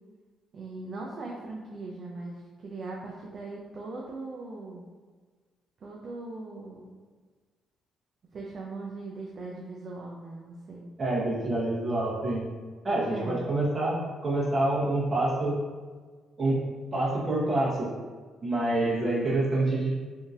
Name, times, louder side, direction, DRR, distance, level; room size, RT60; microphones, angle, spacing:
voice 1, 0.5-4.8 5.8-6.8 8.3-10.9 13.1-13.4, right 3 dB, 50° right, -3 dB, 0.5 m, -39 dB
voice 2, 11.0-12.5 12.8-15.6 16.4-16.6 16.9-17.9 18.4-19.9, right 2 dB, 35° right, -5 dB, 1.1 m, -27 dB
3.6 x 2.7 x 2.5 m, 1.4 s
cardioid pair, 90°, 0 cm